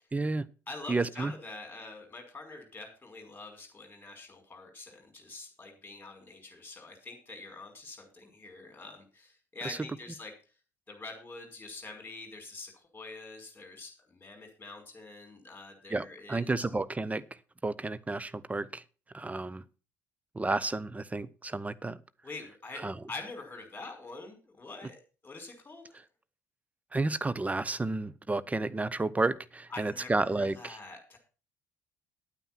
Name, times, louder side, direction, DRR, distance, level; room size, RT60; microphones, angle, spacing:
voice 1, 0.1-0.4 0.9-1.3 9.6-9.8 15.9-17.2 17.6-18.8 19.1-19.6 20.3-22.0 22.8-22.9 26.9-30.8, right 3 dB, 15° right, 17 dB, 0.8 m, -31 dB
voice 2, 0.7-10.3 10.9-16.5 22.2-22.8 23.1-26.0 29.7-31.2, left 3 dB, 20° left, 3 dB, 5.4 m, -45 dB
10.0 x 9.0 x 6.0 m, 0.35 s
figure-of-eight pair, 55°, 9 cm